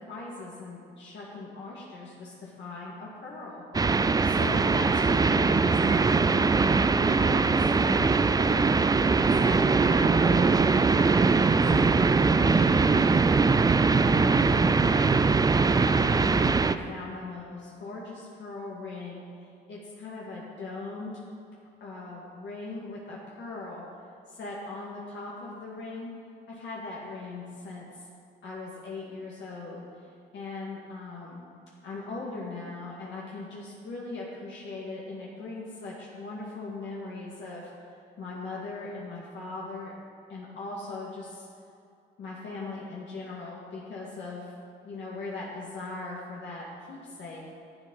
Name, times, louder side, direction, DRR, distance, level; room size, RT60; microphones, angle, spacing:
voice 1, 0.0-3.6 4.2-8.7 9.2-13.4 13.9-19.2 19.7-21.2 21.8-23.8 24.3-26.1 26.5-28.0 28.4-30.0 30.3-31.4 31.8-37.7 38.2-39.9 40.3-41.5 42.2-44.5 44.8-47.4, left 3 dB, 65° left, -5 dB, 2.1 m, -39 dB
sound 1, 3.7-16.8, right 4 dB, 20° right, 0.4 m, -22 dB
11.0 x 8.1 x 5.6 m, 2.5 s
cardioid pair, 90°, 20 cm